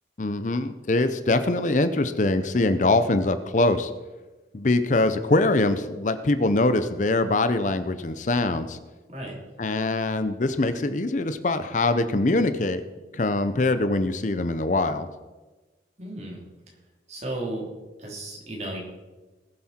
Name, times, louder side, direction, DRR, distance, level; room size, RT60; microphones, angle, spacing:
voice 1, 0.2-3.9 4.5-8.8 9.6-12.8 13.1-15.1, left 2 dB, 45° left, 11 dB, 0.6 m, -23 dB
voice 2, 9.1-9.5 16.0-16.4 17.1-17.6 18.0-18.8, right 1 dB, 40° right, -2 dB, 3.4 m, -34 dB
20.0 x 7.6 x 4.4 m, 1.2 s
head